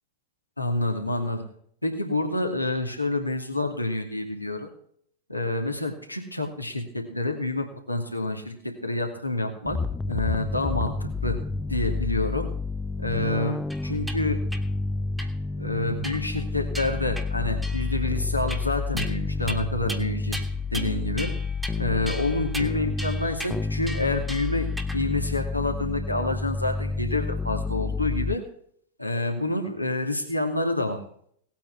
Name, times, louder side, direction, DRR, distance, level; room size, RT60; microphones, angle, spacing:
voice 1, 0.6-1.4 1.8-4.7 5.3-9.8 10.1-11.4 11.7-12.5 13.0-13.6 13.8-14.4 15.6-20.4 20.7-21.3 21.8-28.4 29.0-31.0, left 2 dB, 85° left, 3 dB, 2.4 m, -28 dB
sound 1, 9.7-28.4, left 3 dB, 10° left, 0.5 m, -30 dB
sound 2, 13.7-14.2 14.5-14.6 15.2-15.3 16.0-16.4 16.7-17.3 17.6-18.0 18.5-19.2 19.5-19.6 19.9-20.0 20.3-20.9 21.2-21.8 22.1-25.0, right 1 dB, 5° right, 1.8 m, -37 dB
18.5 x 9.0 x 4.6 m, 0.64 s
figure-of-eight pair, 90°, 0 cm